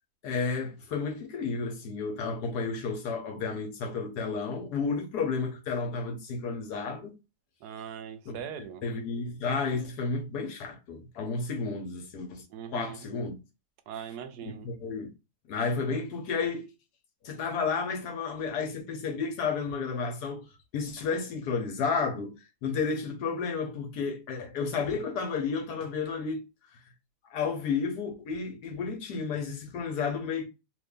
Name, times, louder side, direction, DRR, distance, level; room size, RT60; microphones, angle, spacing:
voice 1, 0.2-7.1 8.3-8.4 8.8-12.4 12.7-13.3 14.4-15.1 15.5-16.7 17.2-20.5 20.7-22.3 22.6-26.4 26.7-26.8 27.3-30.5, left 5 dB, 75° left, 1.4 m, -32 dB
voice 2, 7.6-8.8 12.5-13.0 13.9-14.7, right 8 dB, 80° right, 1.1 m, -40 dB
3.0 x 2.6 x 3.5 m
omnidirectional pair, 1.8 m